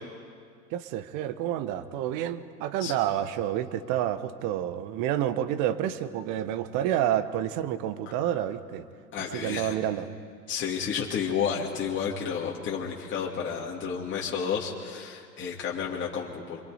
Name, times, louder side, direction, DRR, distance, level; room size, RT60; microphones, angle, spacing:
voice 1, 0.7-8.8 9.2-10.1, right 11 dB, 40° right, 13 dB, 1.4 m, -29 dB
voice 2, 9.1-9.7 10.5-16.6, left 7 dB, 25° left, -3 dB, 2.6 m, -31 dB
26.5 x 25.0 x 5.1 m, 2.1 s
hypercardioid pair, 100°, 48 cm